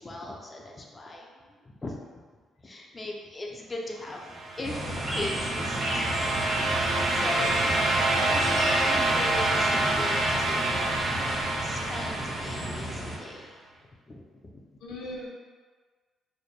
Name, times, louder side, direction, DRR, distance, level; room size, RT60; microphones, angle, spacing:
voice 1, 0.0-1.3 1.6-2.0 2.6-6.2 6.6-13.6 14.1-14.4, left 2 dB, 25° left, -1 dB, 0.5 m, -39 dB
voice 2, 1.1-1.6 14.8-15.3, left 1 dB, 90° left, -4 dB, 0.7 m, -41 dB
sound 1, 4.3-13.2, right 2 dB, 65° right, 0.6 m, -27 dB
sound 2, 4.6-13.2, equal, 20° right, 1.0 m, -34 dB
3.2 x 2.1 x 4.1 m, 1.5 s
cardioid pair, 90°, 0 cm